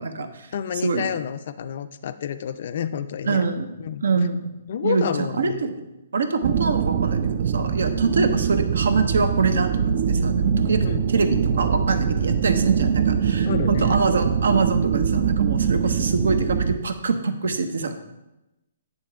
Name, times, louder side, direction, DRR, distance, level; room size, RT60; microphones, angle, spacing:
voice 1, 0.0-0.5 0.8-1.1 3.3-3.7 4.0-4.5 4.8-5.8 6.1-17.9, right 4 dB, 75° right, 9 dB, 0.7 m, -24 dB
voice 2, 0.5-3.4 3.8-4.0 4.7-5.6 10.8-11.1 13.4-14.0, left 8 dB, 55° left, 11 dB, 0.4 m, -29 dB
sound 1, 6.4-16.8, right 7 dB, 45° right, 0.3 m, -23 dB
8.9 x 3.5 x 4.5 m, 0.95 s
hypercardioid pair, 145°, 0 cm